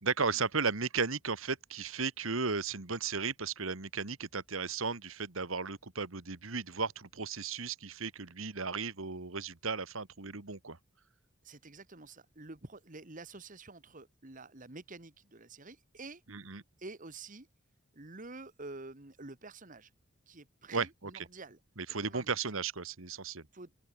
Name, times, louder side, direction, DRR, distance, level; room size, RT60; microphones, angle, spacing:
voice 1, 0.0-10.8 16.3-16.6 20.7-21.3 21.8-23.5, right 4 dB, 75° right, 1.8 m, -35 dB
voice 2, 11.4-16.2 16.8-17.5 17.9-19.9 20.3-21.6 22.0-22.3 23.5-23.7, right 3 dB, 40° right, 1.7 m, -48 dB
open air
head